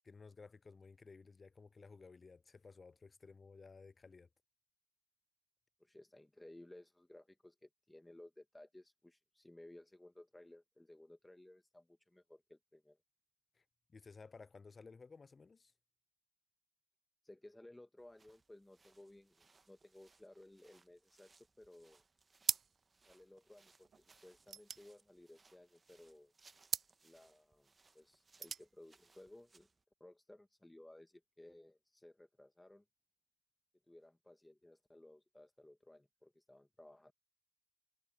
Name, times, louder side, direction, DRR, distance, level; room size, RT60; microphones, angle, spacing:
voice 1, 0.0-4.3 13.5-13.6 13.9-15.7, left 4 dB, 25° left, 0.7 m, -56 dB
voice 2, 5.8-13.0 17.2-21.3 21.6-22.0 23.1-26.3 27.0-29.7 30.0-32.8 33.9-37.1, left 1 dB, 10° left, 2.4 m, -59 dB
sound 1, 18.0-29.8, right 4 dB, 25° right, 1.7 m, -70 dB
sound 2, 22.4-23.0 23.3-23.4 23.6-25.8 26.6-27.0 28.1-28.7, right 7 dB, 40° right, 0.4 m, -41 dB
hypercardioid pair, 65°, 0 cm